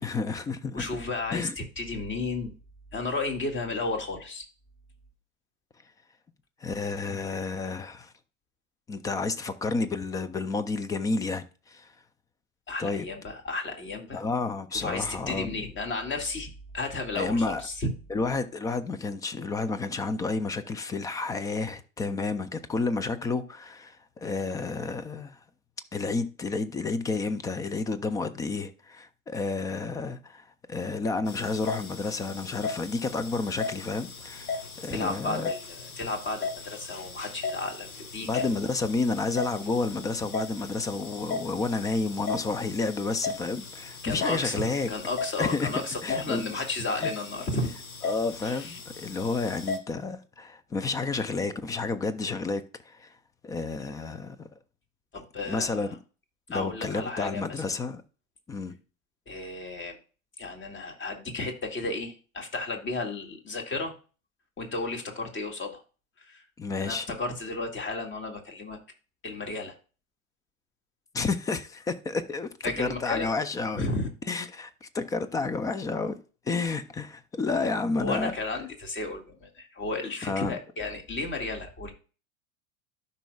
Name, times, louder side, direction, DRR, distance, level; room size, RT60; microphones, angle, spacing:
voice 1, 0.0-0.9 1.3-1.5 6.6-8.1 8.9-11.9 12.8-13.1 14.1-15.6 17.1-17.6 18.1-25.4 25.9-35.5 38.2-44.9 45.4-45.7 46.0-46.6 47.0-47.1 48.0-53.1 53.4-54.5 55.5-55.9 56.5-58.0 58.5-58.8 66.6-67.1 71.1-73.9 74.3-76.2 76.5-78.3 80.2-80.5, left 3 dB, 10° left, 0.3 m, -30 dB
voice 2, 0.7-2.5 2.9-4.4 12.7-14.2 14.7-17.9 34.9-38.5 44.0-47.7 48.4-48.8 55.1-55.9 56.5-57.6 59.3-60.0 60.4-63.9 64.6-65.8 66.2-66.4 66.8-68.8 69.2-69.7 72.6-73.3 73.7-74.1 78.0-81.9, left 3 dB, 25° left, 2.1 m, -33 dB
sound 1, 31.3-49.8, left 4 dB, 85° left, 1.3 m, -37 dB
12.5 x 5.4 x 2.3 m
hypercardioid pair, 95°, 41 cm